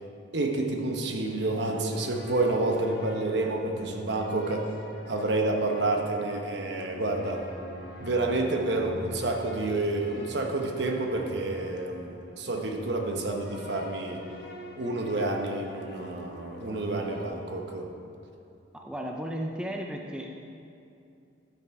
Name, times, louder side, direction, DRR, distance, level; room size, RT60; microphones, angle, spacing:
voice 1, 0.3-4.7 5.1-7.5 8.0-14.2 14.8-17.9, right 2 dB, 60° right, 3 dB, 1.0 m, -29 dB
sound 1, 0.8-17.3, left 1 dB, 60° left, 1.0 m, -44 dB
voice 2, 18.7-20.3, equal, 5° right, 1 dB, 0.5 m, -34 dB
12.0 x 7.0 x 4.8 m, 2.6 s
head